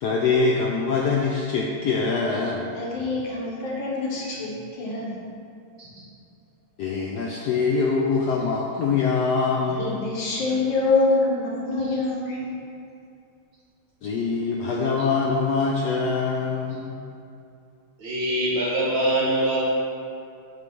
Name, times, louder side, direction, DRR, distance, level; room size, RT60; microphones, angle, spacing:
voice 1, 0.0-2.7 6.8-10.0 14.0-17.0, left 4 dB, 85° left, -1 dB, 0.9 m, -24 dB
voice 2, 2.7-5.2 9.7-12.5, left 3 dB, 65° left, -3 dB, 1.8 m, -25 dB
voice 3, 18.0-19.6, right 1 dB, 65° right, -7 dB, 1.9 m, -23 dB
7.7 x 3.2 x 5.3 m, 2.5 s
omnidirectional pair, 2.3 m